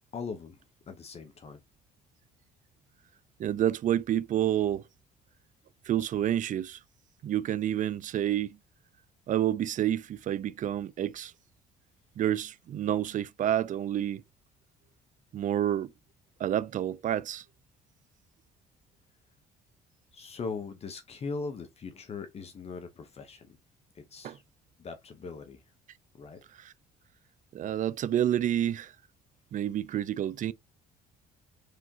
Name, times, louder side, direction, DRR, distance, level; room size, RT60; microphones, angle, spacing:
voice 1, 0.1-0.6 0.9-1.6 20.1-23.6 23.9-24.4 24.8-25.6 26.1-26.4, left 4 dB, 35° left, 1.0 m, -40 dB
voice 2, 3.4-4.8 5.9-6.8 7.2-8.6 9.3-11.3 12.2-14.2 15.3-15.9 16.4-17.4 24.2-24.4 26.6-26.7 27.5-28.9 29.5-30.5, right 11 dB, 50° right, 0.5 m, -29 dB
5.0 x 3.5 x 2.9 m
cardioid pair, 110°, 17 cm